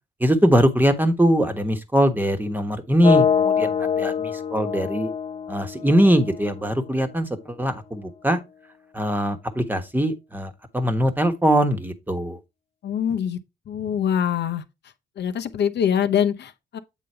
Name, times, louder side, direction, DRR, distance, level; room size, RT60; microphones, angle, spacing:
voice 1, 0.2-5.1 5.5-8.4 8.9-12.4, equal, 10° right, 1.3 m, -21 dB
sound 1, 3.0-7.0, left 7 dB, 30° left, 0.5 m, -24 dB
voice 2, 12.8-13.4 13.7-16.8, left 8 dB, 60° left, 0.8 m, -24 dB
8.2 x 3.9 x 4.3 m
cardioid pair, 90°, 20 cm